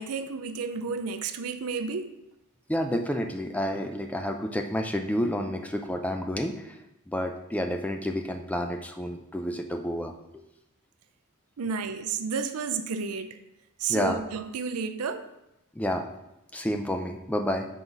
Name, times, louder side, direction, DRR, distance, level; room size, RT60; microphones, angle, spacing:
voice 1, 0.0-2.2 11.6-13.4 13.8-15.3, right 5 dB, 75° right, 9 dB, 0.5 m, -31 dB
voice 2, 2.7-6.8 7.1-10.1 13.9-14.2 15.8-16.1 16.5-17.7, equal, 5° left, 5 dB, 0.4 m, -29 dB
5.6 x 4.0 x 4.6 m, 0.88 s
head